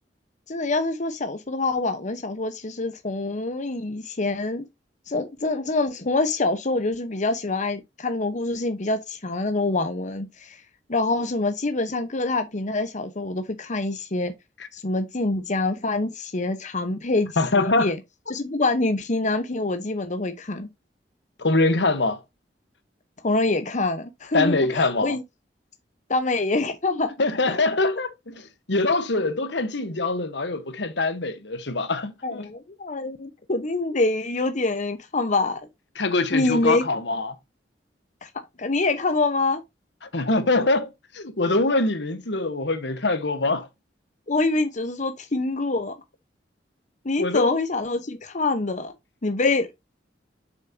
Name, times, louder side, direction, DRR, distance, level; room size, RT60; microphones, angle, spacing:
voice 1, 0.5-4.6 5.1-10.6 10.9-14.3 14.7-17.3 17.5-18.0 18.3-20.7 23.2-25.2 26.1-27.1 27.5-27.6 32.2-35.6 36.3-36.8 38.2-38.3 38.6-39.6 44.3-45.9 47.0-48.9 49.2-49.7, left 2 dB, 45° left, 1.0 m, -25 dB
voice 2, 17.4-17.9 21.4-22.2 24.3-25.2 27.2-32.5 36.0-37.3 40.1-43.7 47.2-47.6, left 2 dB, 70° left, 1.3 m, -24 dB
7.5 x 6.5 x 2.8 m
head